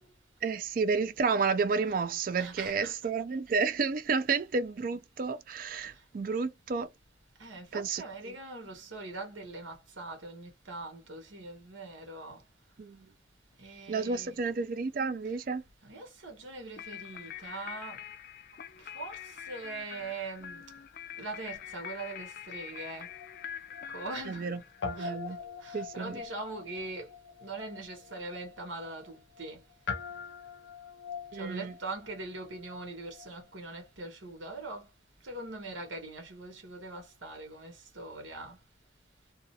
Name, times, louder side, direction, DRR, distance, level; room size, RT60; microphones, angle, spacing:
voice 1, 0.4-6.9 7.7-8.3 12.8-13.0 13.9-15.6 24.3-25.4 25.7-26.2 31.3-31.7, right 4 dB, 45° right, 0.4 m, -31 dB
voice 2, 2.4-2.9 7.4-12.4 13.6-14.5 15.8-18.0 18.7-20.7 21.2-23.1 23.9-24.6 25.0-25.2 25.6-27.1 27.4-29.6 31.3-34.9 35.2-38.6, right 2 dB, 90° right, 1.2 m, -42 dB
sound 1, 16.8-25.1, left 10 dB, 50° left, 0.3 m, -45 dB
Guitar, 22.7-24.5 24.8-33.4, left 5 dB, 85° left, 0.6 m, -43 dB
2.5 x 2.4 x 2.6 m
head